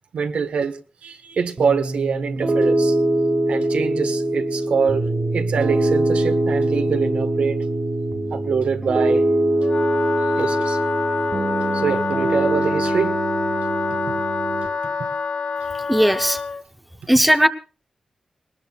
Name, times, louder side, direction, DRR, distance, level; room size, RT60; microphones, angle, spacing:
voice 1, 0.1-3.0 3.5-5.1 5.3-7.6 8.3-9.2 10.4-10.8 11.7-13.2 14.8-15.1, right 6 dB, 75° right, 1.4 m, -24 dB
Piano, 1.6-14.7, right 1 dB, 40° right, 2.1 m, -22 dB
Wind instrument woodwind instrument, 9.6-16.6, left 5 dB, 60° left, 1.0 m, -26 dB
voice 2, 15.9-16.4 17.1-17.5, equal, 5° right, 0.8 m, -16 dB
21.0 x 19.5 x 2.4 m
wide cardioid pair, 110°, 2 cm